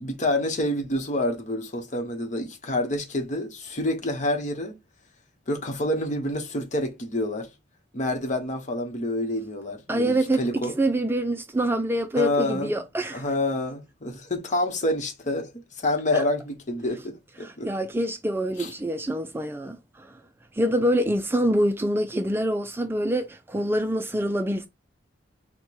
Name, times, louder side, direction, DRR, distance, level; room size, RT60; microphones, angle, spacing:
voice 1, 0.0-4.8 5.5-7.5 7.9-10.7 12.2-12.8 13.1-17.7 18.6-18.7, left 1 dB, 45° left, 1.0 m, -28 dB
voice 2, 9.9-13.2 16.1-16.2 17.4-20.2 20.5-24.7, right 1 dB, 15° right, 0.3 m, -25 dB
4.3 x 2.2 x 4.6 m
head